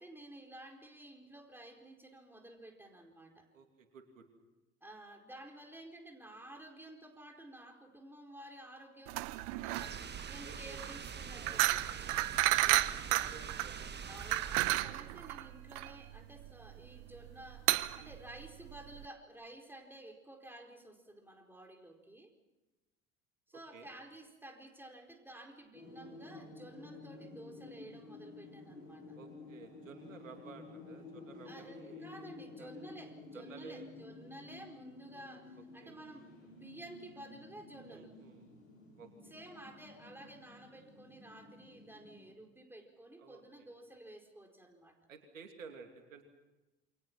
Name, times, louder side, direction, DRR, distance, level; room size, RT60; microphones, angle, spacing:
voice 1, 0.0-3.5 4.8-12.2 14.1-22.3 23.5-29.2 31.5-38.1 39.3-45.0, right 1 dB, 5° right, 3 dB, 4.5 m, -52 dB
voice 2, 3.5-4.2 10.4-11.0 11.4-12.3 12.6-13.8 18.0-18.2 23.5-23.9 29.1-32.1 32.6-32.7 33.3-33.9 35.8-36.0 37.9-38.5 39.0-39.3 43.2-43.7 45.1-46.2, right 5 dB, 80° right, 5 dB, 2.8 m, -54 dB
sound 1, 9.1-19.1, right 18 dB, 55° right, 1.0 m, -33 dB
sound 2, 9.7-14.8, right 6 dB, 25° right, 1.7 m, -45 dB
sound 3, 25.7-42.3, left 3 dB, 85° left, 4.9 m, -52 dB
28.5 x 24.0 x 6.0 m, 1.1 s
figure-of-eight pair, 70°, 39 cm